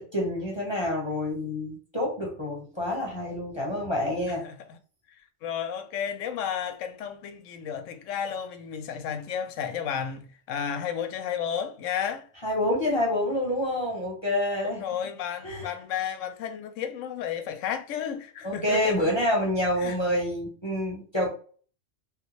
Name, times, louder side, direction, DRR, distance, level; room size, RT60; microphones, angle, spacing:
voice 1, 0.0-4.4 12.4-14.8 15.4-15.7 18.4-21.3, left 1 dB, 25° left, 0.8 m, -27 dB
voice 2, 4.3-4.8 5.4-12.3 14.6-19.1 19.8-20.0, left 8 dB, 85° left, 0.9 m, -33 dB
3.5 x 2.2 x 3.0 m
omnidirectional pair, 1.3 m